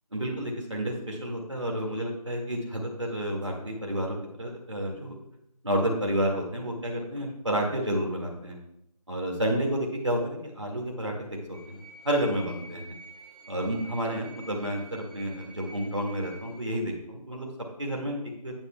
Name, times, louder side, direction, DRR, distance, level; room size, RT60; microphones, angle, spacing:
voice 1, 0.1-5.2 5.6-8.6 9.1-12.8 13.5-17.5 17.8-18.2 18.4-18.5, right 1 dB, 45° right, 0 dB, 2.2 m, -30 dB
sound 1, 11.5-16.6, right 1 dB, 10° right, 3.4 m, -48 dB
10.0 x 9.9 x 2.4 m, 0.76 s
figure-of-eight pair, 180°, 21 cm